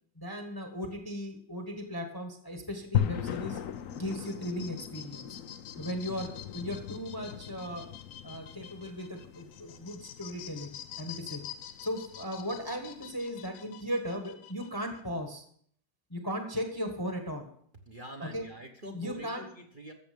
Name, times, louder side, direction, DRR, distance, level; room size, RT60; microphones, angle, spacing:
voice 1, 0.2-3.6 3.9-5.3 5.7-7.9 8.2-11.4 11.8-15.4 16.1-17.5 18.2-18.5 18.9-19.5, equal, 15° left, 4 dB, 1.2 m, -37 dB
sound 1, 2.9-13.2, left 9 dB, 60° left, 0.9 m, -38 dB
sound 2, 3.7-15.0, left 10 dB, 80° left, 1.5 m, -48 dB
voice 2, 17.8-19.9, equal, 35° right, 3 dB, 1.2 m, -45 dB
14.5 x 7.3 x 5.3 m, 0.62 s
omnidirectional pair, 1.9 m